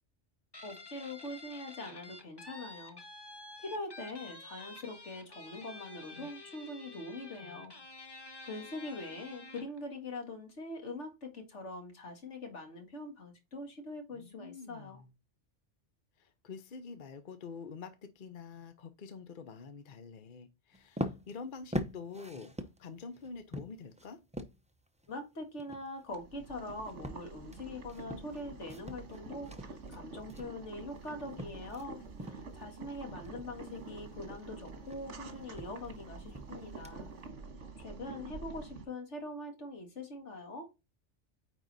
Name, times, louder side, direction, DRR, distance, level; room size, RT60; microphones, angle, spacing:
Guitar, 0.5-9.8, left 2 dB, 20° left, 1.1 m, -50 dB
voice 1, 0.6-3.0 3.6-7.7 8.4-15.0 25.1-37.1 37.8-40.7, left 2 dB, 75° left, 2.1 m, -43 dB
voice 2, 7.4-7.8 14.1-15.1 16.2-24.2, left 5 dB, 50° left, 0.9 m, -47 dB
sound 1, 20.7-31.9 32.2-32.6 33.0-37.3, equal, 10° right, 0.5 m, -43 dB
Boiling, 26.1-38.8, right 3 dB, 75° right, 1.7 m, -47 dB
9.1 x 4.1 x 4.0 m
omnidirectional pair, 1.2 m